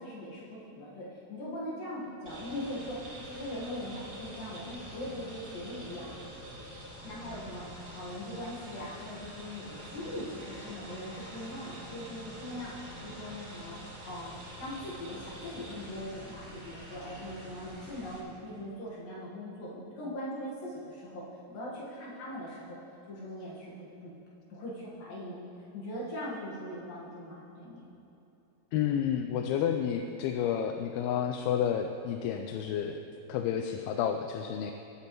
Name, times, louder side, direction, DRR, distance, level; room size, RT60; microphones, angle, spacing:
voice 1, 0.0-3.0 3.2-6.4 7.0-7.7 7.9-12.7 13.0-13.8 14.0-21.2 21.5-22.8 23.1-24.1 24.5-25.5 25.7-27.9, left 1 dB, 70° left, -7 dB, 3.1 m, -41 dB
sound 1, 2.3-18.2, right 1 dB, 25° right, 2.6 m, -46 dB
voice 2, 28.7-33.0 33.3-34.7, left 8 dB, 85° left, 5 dB, 2.4 m, -30 dB
20.5 x 8.7 x 3.0 m, 2.9 s
omnidirectional pair, 4.5 m